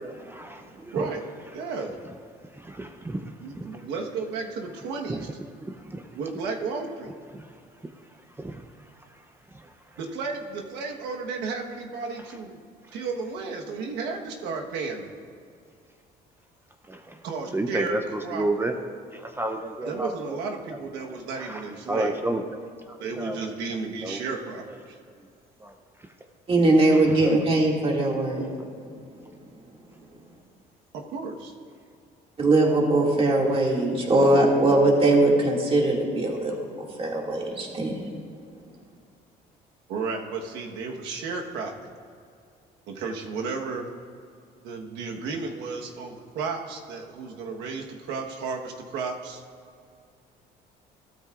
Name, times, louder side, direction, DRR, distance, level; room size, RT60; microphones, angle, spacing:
voice 1, 0.0-0.6 0.9-1.1 2.6-3.3 3.6-3.7 5.9-6.0 7.3-7.4 8.4-8.6 16.9-17.2 17.5-18.0 18.3-18.7 19.1-20.1 21.4-21.6 21.9-22.4 23.2-23.4 24.0-24.2 25.6-25.7, right 2 dB, 15° right, 5 dB, 0.6 m, -30 dB
voice 2, 0.9-1.2 1.5-1.9 3.4-5.3 6.1-7.1 10.0-12.6 12.9-15.1 17.2-18.7 19.8-22.2 23.0-25.0 30.9-31.5 39.9-41.9 42.9-43.9 44.6-49.4, right 4 dB, 90° right, 2 dB, 1.3 m, -33 dB
voice 3, 26.5-28.4 32.4-37.9, right 2 dB, 35° right, -1 dB, 2.3 m, -21 dB
15.5 x 13.0 x 2.5 m, 2.3 s
cardioid pair, 110°, 17 cm